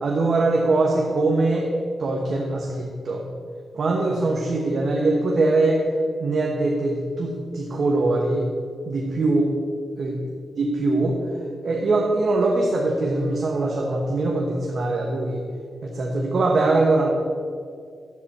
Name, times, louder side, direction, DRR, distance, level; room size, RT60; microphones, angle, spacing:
voice 1, 0.0-3.2 3.7-5.9 6.2-8.5 8.8-9.5 10.0-10.1 10.6-11.2 11.6-15.4 15.8-17.1, right 2 dB, 55° right, -1 dB, 1.3 m, -22 dB
11.0 x 8.4 x 4.3 m, 2.2 s
cardioid pair, 100°, 0 cm